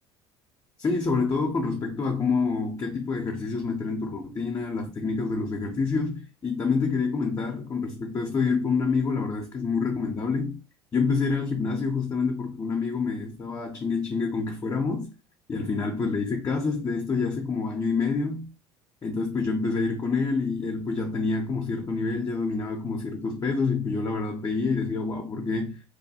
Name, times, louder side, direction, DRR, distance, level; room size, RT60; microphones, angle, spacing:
voice 1, 0.8-10.6 10.9-15.1 15.5-18.5 19.0-25.8, left 4 dB, 25° left, 0.5 m, -27 dB
2.8 x 2.2 x 2.7 m
figure-of-eight pair, 60°, 15 cm